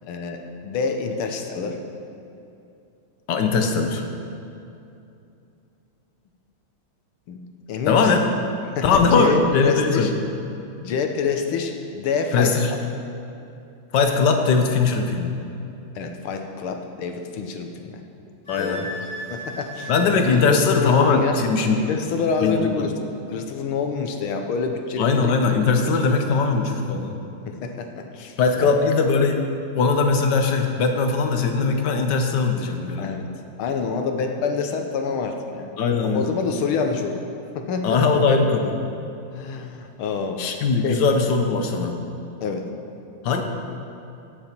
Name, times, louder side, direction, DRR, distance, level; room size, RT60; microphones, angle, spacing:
voice 1, 0.0-1.8 7.3-7.4 7.7-8.1 8.8-10.1 10.8-12.8 16.0-18.0 18.6-19.0 19.3-21.4 21.7-22.9 23.3-25.3 27.5-28.7 33.0-33.3 33.6-35.7 36.0-37.2 37.6-38.0 39.3-40.4 40.8-41.0 42.4-42.7, left 5 dB, 80° left, 5 dB, 1.8 m, -27 dB
voice 2, 3.3-4.0 7.9-8.2 8.8-10.1 12.3-12.7 13.9-15.4 18.5-18.8 19.9-21.8 22.4-22.9 25.0-27.2 28.4-29.4 29.7-33.1 35.8-36.3 37.8-38.8 40.4-42.0 43.2-43.4, left 4 dB, 60° left, 4 dB, 1.4 m, -20 dB
Wind instrument woodwind instrument, 18.5-20.5, right 1 dB, 35° left, 3.1 m, -35 dB
17.0 x 7.1 x 4.5 m, 2.7 s
omnidirectional pair, 2.3 m